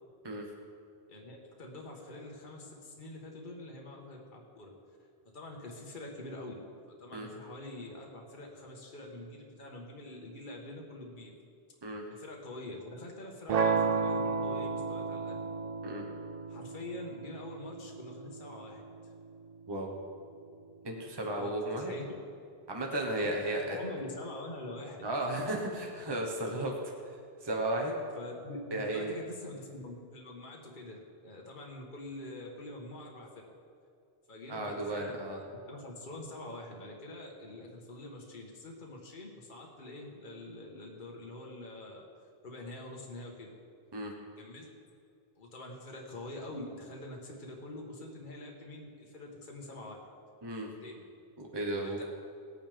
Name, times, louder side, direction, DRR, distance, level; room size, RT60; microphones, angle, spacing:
voice 1, 1.1-4.7 5.3-6.6 6.9-11.3 12.1-15.4 16.5-18.9 21.3-22.1 23.1-25.1 28.1-33.3 34.3-35.4 35.7-42.0 42.4-43.5 44.4-44.7 45.4-50.0 50.8-51.0 51.8-52.0, left 2 dB, 50° left, 0 dB, 1.6 m, -45 dB
sound 1, 13.5-19.5, right 5 dB, 55° right, 0.5 m, -33 dB
voice 2, 20.8-21.9 22.7-23.8 25.0-26.9 27.4-28.0 28.7-29.1 34.5-35.4 43.9-44.1 50.4-50.7 51.4-52.0, right 1 dB, 25° right, 0 dB, 1.3 m, -34 dB
19.0 x 8.9 x 3.5 m, 2.4 s
omnidirectional pair, 1.1 m